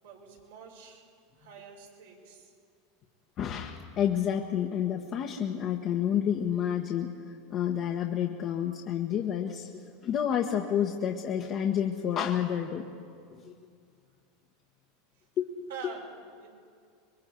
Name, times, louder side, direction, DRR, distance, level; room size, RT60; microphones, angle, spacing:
voice 1, 0.0-1.1 1.4-2.5 15.2-15.3 15.7-16.5, right 6 dB, 85° right, -2 dB, 5.2 m, -46 dB
voice 2, 3.4-12.9 13.3-13.5 15.4-15.7, left 9 dB, 45° left, 0 dB, 1.5 m, -30 dB
26.0 x 22.0 x 4.7 m, 2.2 s
hypercardioid pair, 100°, 0 cm